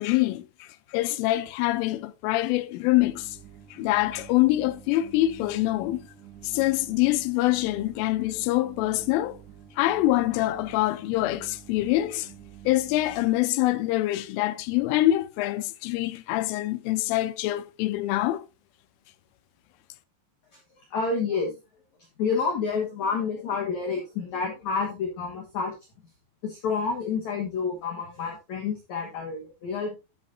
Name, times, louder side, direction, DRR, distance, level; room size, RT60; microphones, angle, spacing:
voice 1, 0.0-3.4 3.7-6.0 6.4-9.4 9.8-12.3 12.7-18.5, left 16 dB, 85° left, 3.1 m, -25 dB
sound 1, 2.9-13.3, right 10 dB, 65° right, 3.1 m, -48 dB
voice 2, 20.5-21.6 22.2-25.7 26.4-30.0, left 5 dB, 60° left, 2.0 m, -29 dB
10.5 x 8.2 x 2.6 m
omnidirectional pair, 5.8 m